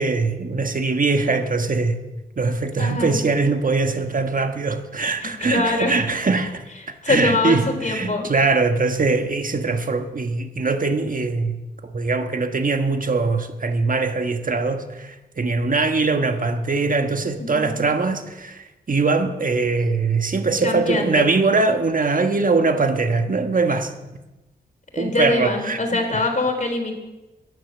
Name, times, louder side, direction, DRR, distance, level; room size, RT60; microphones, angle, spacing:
voice 1, 0.0-2.0 2.4-6.6 7.1-23.9 25.0-25.8, right 3 dB, 50° right, 7 dB, 1.4 m, -22 dB
voice 2, 2.8-3.2 5.2-5.9 7.0-8.3 17.4-17.8 20.6-21.3 24.9-27.0, left 2 dB, 45° left, 3 dB, 3.7 m, -24 dB
12.0 x 10.5 x 7.3 m, 1.1 s
supercardioid pair, 45°, 18 cm